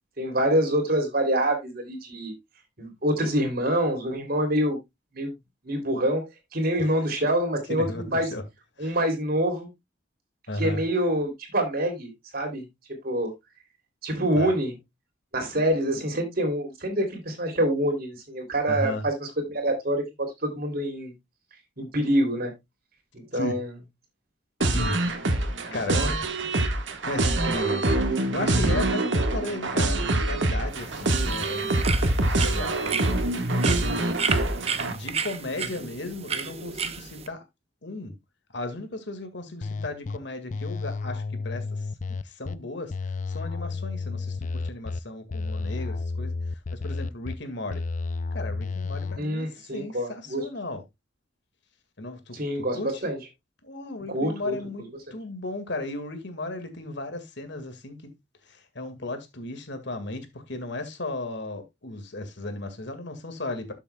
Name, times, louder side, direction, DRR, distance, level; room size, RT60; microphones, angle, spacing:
voice 1, 0.2-2.3 2.8-4.8 5.1-5.3 5.6-8.3 8.8-9.7 10.6-12.6 13.0-13.3 14.0-14.7 15.3-21.1 21.8-22.5 23.1-23.7 25.6-26.1 49.2-50.4 52.3-53.2 54.1-54.5, right 1 dB, 50° right, 3.2 m, -26 dB
voice 2, 6.8-7.2 7.7-8.4 8.8-9.0 10.5-10.8 14.4-14.5 18.7-19.0 23.3-23.6 24.6-25.0 25.7-26.0 27.1-33.9 34.6-37.4 37.8-38.2 38.5-41.9 42.2-42.9 43.3-46.3 46.7-47.8 48.3-50.8 52.0-52.9 53.6-54.9 55.1-58.1 58.5-63.7, left 2 dB, 65° left, 2.0 m, -35 dB
sound 1, 24.6-34.9, right 2 dB, 70° right, 1.6 m, -25 dB
sound 2, 30.7-37.3, right 6 dB, 35° right, 0.8 m, -33 dB
sound 3, 39.6-40.2 40.5-42.5 42.9-45.0 45.3-47.3 47.7-49.2, left 3 dB, 40° left, 0.5 m, -31 dB
12.5 x 7.0 x 2.3 m
head